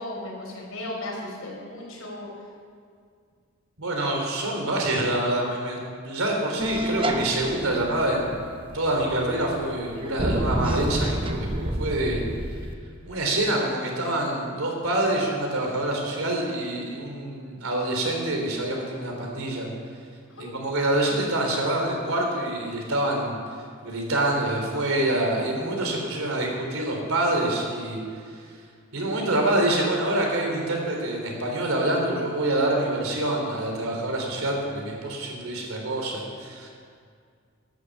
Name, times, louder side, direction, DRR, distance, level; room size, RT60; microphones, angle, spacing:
voice 1, 0.0-2.3 20.3-20.5, left 1 dB, 80° left, -3 dB, 4.6 m, -35 dB
voice 2, 3.8-8.3 8.7-12.2 13.0-19.7 20.4-23.4 23.8-28.5 28.9-36.7, right 1 dB, 80° right, 0 dB, 3.3 m, -26 dB
sound 1, 6.6-12.7, right 1 dB, 25° right, 0.8 m, -30 dB
12.5 x 10.0 x 7.3 m, 2.2 s
head